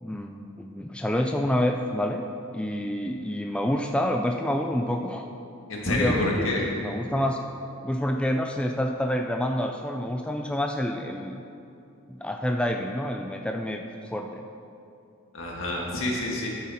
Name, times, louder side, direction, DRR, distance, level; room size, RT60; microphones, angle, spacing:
voice 1, 0.0-2.3 2.5-5.3 5.9-6.5 6.8-7.4 7.8-11.4 12.1-14.4, left 1 dB, 5° left, 3 dB, 0.3 m, -28 dB
voice 2, 5.7-6.6 15.3-16.5, left 1 dB, 65° left, -2 dB, 1.9 m, -27 dB
12.0 x 7.3 x 4.3 m, 2.7 s
head